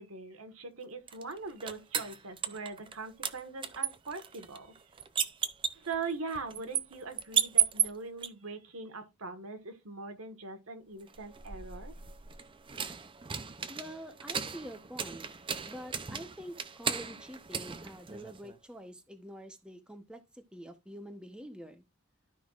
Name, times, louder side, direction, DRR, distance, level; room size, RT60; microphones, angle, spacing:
voice 1, 0.0-4.8 5.7-11.9, right 4 dB, 80° right, 1.5 m, -41 dB
sound 1, 1.1-3.0 3.2-8.3 11.1-18.6, right 8 dB, 25° right, 0.5 m, -34 dB
voice 2, 13.7-15.3 15.7-21.8, equal, 5° right, 0.9 m, -46 dB
12.5 x 5.6 x 2.4 m
head